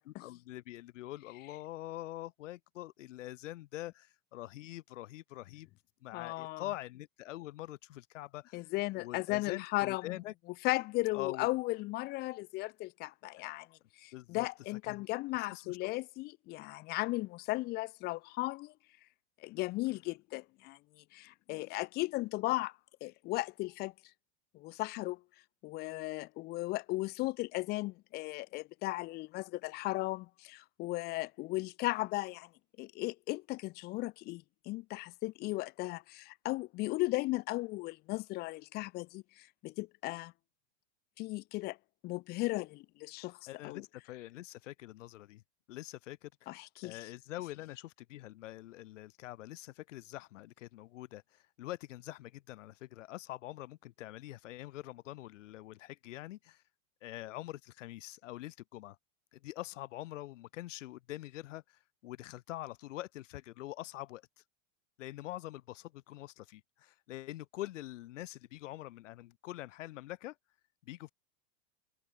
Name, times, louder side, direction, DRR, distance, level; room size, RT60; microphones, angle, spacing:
voice 1, 0.1-5.7 6.0-10.3 11.1-11.5 13.4-13.5 14.1-15.1 15.4-15.8 43.5-45.4 45.7-46.5 46.8-56.6 57.0-59.0 59.3-64.2 65.0-70.4 70.8-71.1, left 16 dB, 85° left, 3.3 m, -45 dB
voice 2, 6.1-6.6 8.5-10.2 10.6-18.7 19.4-23.9 24.5-25.2 25.6-32.5 32.8-40.3 41.2-41.8 42.0-43.8 46.5-47.0, left 20 dB, 25° left, 0.8 m, -36 dB
supercardioid pair, 175°, 36 cm